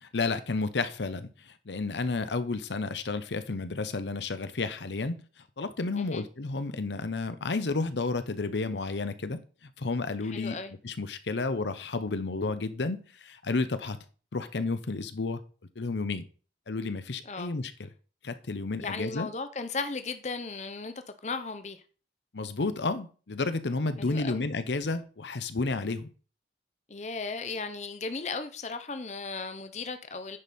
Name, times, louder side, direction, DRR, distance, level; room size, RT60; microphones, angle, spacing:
voice 1, 0.0-5.2 5.6-9.4 9.8-10.6 10.8-14.0 14.3-15.4 15.8-16.2 16.7-17.9 18.2-19.3 22.3-26.1, left 3 dB, 85° left, 0.8 m, -31 dB
voice 2, 10.2-10.7 17.2-17.5 18.8-20.9 21.2-21.8 24.0-24.4 26.9-30.4, left 4 dB, 40° left, 0.7 m, -36 dB
9.9 x 5.4 x 4.3 m
head